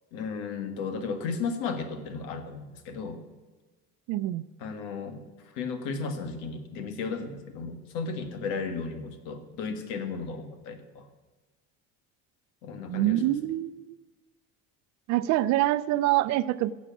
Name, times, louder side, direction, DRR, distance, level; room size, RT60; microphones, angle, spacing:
voice 1, 0.1-3.2 4.6-11.0 12.6-13.2, left 5 dB, 80° left, 8 dB, 1.9 m, -34 dB
voice 2, 4.1-4.5 12.9-14.0 15.1-16.7, right 15 dB, 60° right, 15 dB, 0.6 m, -25 dB
16.0 x 7.4 x 7.2 m, 1.3 s
cardioid pair, 160°, 31 cm